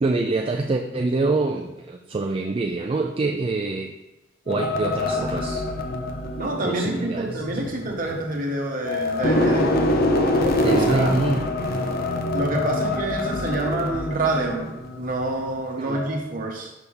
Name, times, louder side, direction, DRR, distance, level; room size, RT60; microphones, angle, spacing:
voice 1, 0.0-4.0 4.5-5.6 6.6-7.4 10.6-11.4 15.8-16.0, right 3 dB, 30° right, 2 dB, 0.3 m, -25 dB
sound 1, 4.5-8.5 8.8-15.6 15.9-16.2, left 1 dB, 50° left, 0.6 m, -25 dB
voice 2, 6.4-9.7 10.6-11.1 12.3-16.7, right 2 dB, 45° right, 0 dB, 1.1 m, -27 dB
6.0 x 3.4 x 5.4 m, 0.96 s
head